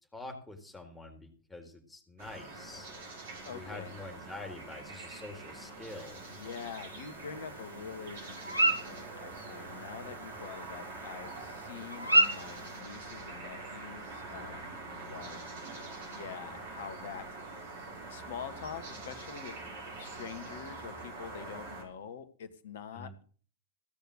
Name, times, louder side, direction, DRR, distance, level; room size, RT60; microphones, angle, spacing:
voice 1, 0.1-2.9 3.5-6.2 22.9-23.1, left 2 dB, 5° left, 2 dB, 4.2 m, -46 dB
sound 1, 2.2-21.8, right 3 dB, 55° right, 5.7 m, -45 dB
voice 2, 3.4-4.0 6.3-14.8 15.1-15.4 16.0-17.3 18.1-19.5 20.0-23.2, left 7 dB, 60° left, 12 dB, 1.6 m, -45 dB
sound 2, 5.9-12.8, right 1 dB, 85° left, 1.4 m, -33 dB
16.5 x 7.0 x 6.6 m, 0.42 s
figure-of-eight pair, 90°, 0 cm